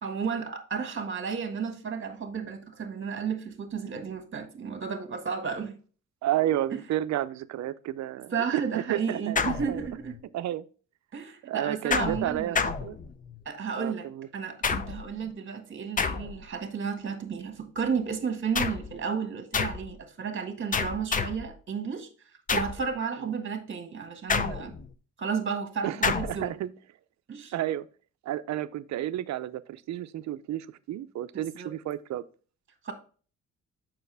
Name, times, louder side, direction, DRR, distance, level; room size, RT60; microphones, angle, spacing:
voice 1, 0.0-5.8 6.7-6.8 8.3-10.2 11.1-12.7 13.5-14.1 14.3-22.1 22.5-24.8 25.2-26.5 27.3-27.5 31.3-31.7 32.8-32.9, right 6 dB, 40° right, 1.7 m, -32 dB
voice 2, 6.2-9.9 10.3-10.7 11.4-13.0 13.8-14.3 25.8-26.7 27.5-27.9 28.2-32.2, right 13 dB, 65° right, 0.6 m, -31 dB
sound 1, 9.4-10.2 11.9-13.4 14.6-15.2 16.0-16.6 18.5-19.0 19.5-19.9 20.7-21.5 22.5-22.9 24.3-24.9 26.0-26.5, left 5 dB, 25° left, 0.6 m, -29 dB
6.9 x 5.7 x 3.3 m
cardioid pair, 90°, 30 cm